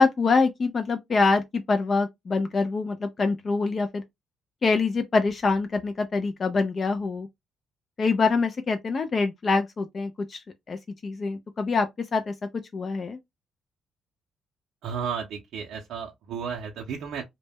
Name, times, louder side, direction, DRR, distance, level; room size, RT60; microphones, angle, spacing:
voice 1, 0.0-4.0 4.6-7.3 8.0-12.3 12.7-13.2, left 4 dB, 40° left, 0.3 m, -25 dB
voice 2, 14.8-17.2, right 7 dB, 80° right, 0.4 m, -33 dB
2.1 x 2.0 x 3.3 m
cardioid pair, 90°, 0 cm